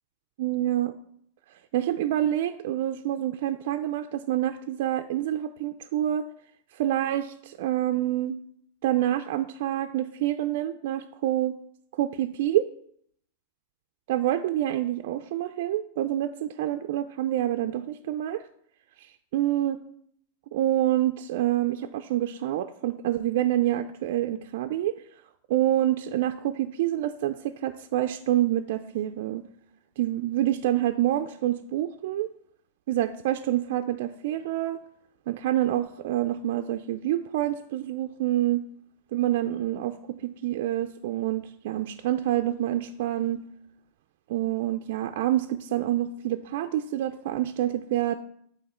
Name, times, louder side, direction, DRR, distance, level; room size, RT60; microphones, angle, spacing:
voice 1, 0.4-0.9 1.7-6.3 6.7-8.4 8.8-11.5 11.9-12.6 14.1-18.4 19.0-19.1 19.3-19.8 20.5-25.0 25.5-29.4 30.0-32.3 32.9-34.8 35.3-38.6 39.1-40.0 40.2-43.4 44.3-48.2, right 13 dB, 65° right, 7 dB, 0.3 m, -27 dB
8.7 x 3.1 x 4.3 m, 0.67 s
supercardioid pair, 150°, 0 cm